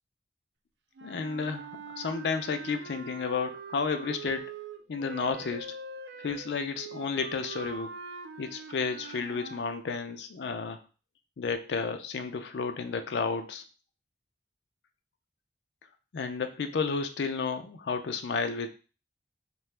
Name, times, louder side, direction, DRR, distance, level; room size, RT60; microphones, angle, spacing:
voice 1, 1.0-4.5 4.9-5.8 6.2-7.9 8.4-10.8 11.4-13.6 16.1-18.7, left 5 dB, 70° left, 7 dB, 0.4 m, -32 dB
sound 1, 1.0-9.7, right 5 dB, 70° right, 0.4 m, -43 dB
2.8 x 2.3 x 3.2 m, 0.35 s
head